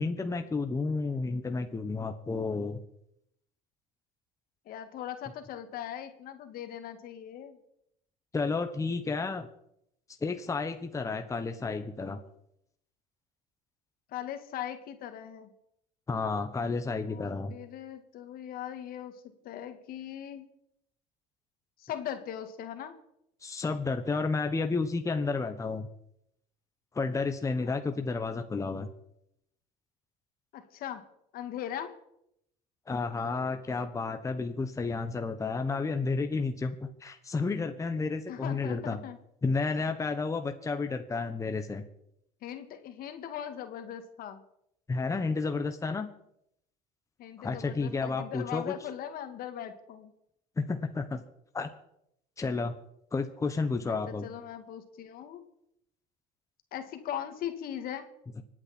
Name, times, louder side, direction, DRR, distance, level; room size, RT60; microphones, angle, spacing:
voice 1, 0.0-2.8 8.3-9.5 10.2-12.2 16.1-17.5 23.4-25.9 26.9-28.9 32.9-39.0 39.4-41.8 44.9-46.1 47.4-48.8 50.6-51.2 51.5-51.7 52.4-52.7 53.1-54.3, left 4 dB, 20° left, 6 dB, 1.2 m, -31 dB
voice 2, 4.7-7.6 14.1-15.5 17.1-20.5 21.8-23.0 27.7-27.8 30.5-31.0 31.3-31.9 38.3-39.2 42.4-44.4 47.2-50.1 53.9-55.4 56.7-58.1, left 10 dB, 60° left, 7 dB, 1.9 m, -40 dB
25.0 x 9.0 x 4.4 m, 0.77 s
supercardioid pair, 95°, 17 cm